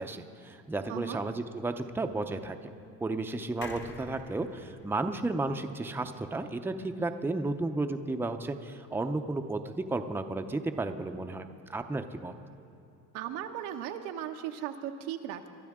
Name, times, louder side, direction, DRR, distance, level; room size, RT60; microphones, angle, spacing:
voice 1, 0.0-2.6 3.0-12.3, right 2 dB, 5° right, 6 dB, 0.6 m, -33 dB
voice 2, 0.9-1.2 13.1-15.5, right 10 dB, 90° right, 5 dB, 1.0 m, -37 dB
sound 1, 3.6-7.1 7.5-7.6 7.8-7.9, left 3 dB, 35° left, 1.2 m, -49 dB
23.0 x 12.0 x 3.6 m, 2.8 s
cardioid pair, 105°, 33 cm